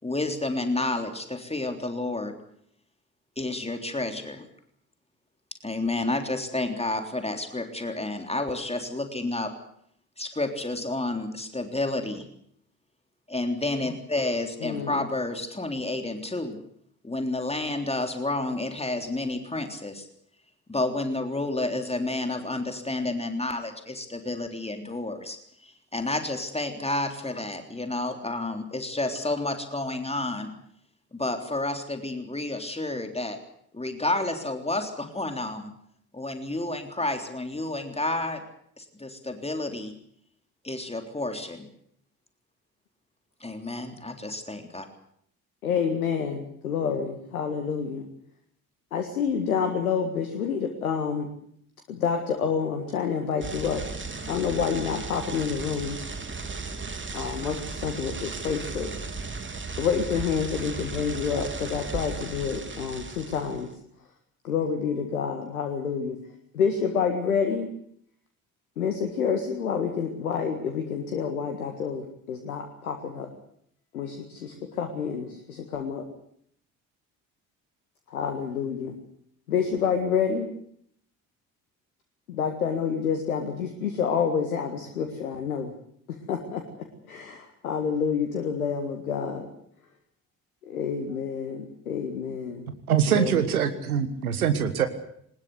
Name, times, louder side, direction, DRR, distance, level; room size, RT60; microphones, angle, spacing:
voice 1, 0.0-2.3 3.4-4.5 5.6-9.5 10.2-12.3 13.3-16.6 17.0-20.0 20.7-30.5 31.1-33.4 33.7-35.7 36.1-38.4 38.8-39.9 40.6-41.7 43.4-44.9, left 2 dB, 15° left, 5 dB, 3.5 m, -30 dB
voice 2, 14.6-15.1 45.6-48.1 48.9-51.3 51.9-53.8 54.3-56.0 57.1-58.9 59.8-63.7 64.4-66.2 66.5-67.7 68.8-73.3 73.9-76.0 78.1-79.0 79.5-80.5 82.3-85.7 86.1-86.6 87.1-89.5 90.6-92.7 93.1-93.5, left 6 dB, 80° left, 6 dB, 1.8 m, -28 dB
sound 1, 53.4-63.7, right 4 dB, 25° right, 3.2 m, -36 dB
voice 3, 92.9-94.9, right 8 dB, 85° right, 10 dB, 1.5 m, -23 dB
21.5 x 20.0 x 8.0 m, 0.68 s
figure-of-eight pair, 50°, 43 cm